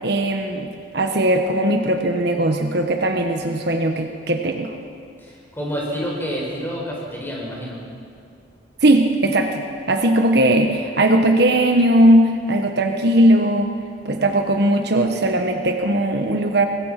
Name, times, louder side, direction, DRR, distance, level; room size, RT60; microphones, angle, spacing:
voice 1, 0.0-4.7 8.8-13.7 14.0-16.7, right 1 dB, 55° right, 4 dB, 1.3 m, -18 dB
voice 2, 5.2-7.8, equal, 10° left, -3 dB, 5.8 m, -28 dB
24.0 x 20.5 x 5.9 m, 2.3 s
head